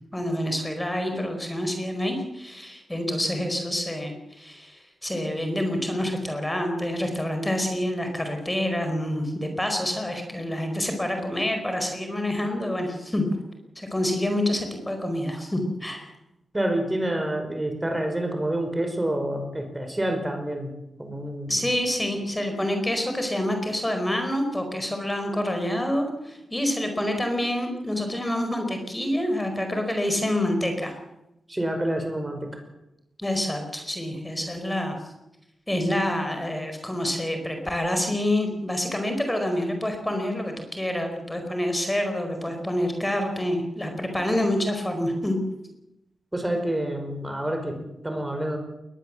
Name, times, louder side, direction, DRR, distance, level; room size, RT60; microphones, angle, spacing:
voice 1, 0.1-13.2 13.7-16.1 21.5-30.9 33.2-34.9 35.7-45.4, left 1 dB, 15° left, 5 dB, 4.8 m, -27 dB
voice 2, 16.5-20.7 21.0-21.7 31.5-32.5 46.3-48.6, right 1 dB, 15° right, 6 dB, 5.4 m, -28 dB
21.0 x 20.0 x 7.7 m, 0.91 s
cardioid pair, 70°, 0 cm